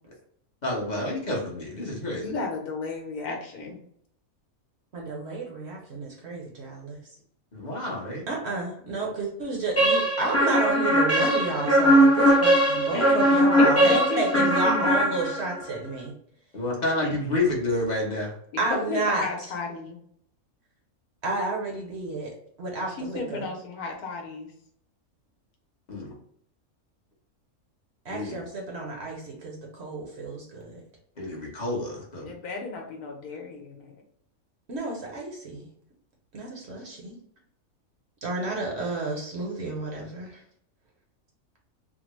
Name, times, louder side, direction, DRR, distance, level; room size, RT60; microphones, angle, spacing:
voice 1, 0.6-2.3 7.5-8.3 16.5-18.3 25.9-26.1 28.1-28.4 31.2-32.3, left 2 dB, 35° left, -3 dB, 0.9 m, -29 dB
voice 2, 2.2-3.8 12.9-15.1 17.0-17.1 18.5-19.9 22.9-24.5 32.2-34.0, left 3 dB, 85° left, 1 dB, 1.3 m, -33 dB
voice 3, 4.9-7.0 8.3-16.1 18.6-19.2 21.2-22.3 22.6-23.5 28.0-30.8 34.7-35.6 36.3-37.2 38.2-40.4, right 3 dB, 55° right, -1 dB, 0.9 m, -31 dB
sound 1, 9.8-15.6, equal, 20° left, 0.4 m, -20 dB
3.6 x 2.1 x 3.0 m, 0.67 s
omnidirectional pair, 1.6 m